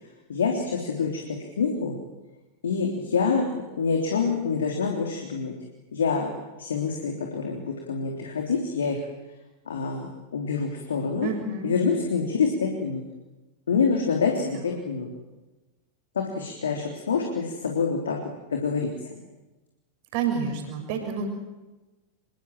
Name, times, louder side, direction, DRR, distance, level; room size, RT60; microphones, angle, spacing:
voice 1, 0.3-1.2 1.6-2.0 2.6-5.5 5.9-6.3 6.6-9.0 9.7-11.3 11.6-13.0 13.7-15.1 16.2-18.2 18.5-19.2, left 5 dB, 65° left, 2 dB, 3.4 m, -26 dB
voice 2, 11.2-11.7 14.5-14.7 20.1-21.3, right 5 dB, 45° right, 5 dB, 6.6 m, -29 dB
26.0 x 23.0 x 7.7 m, 1.1 s
figure-of-eight pair, 90°, 0 cm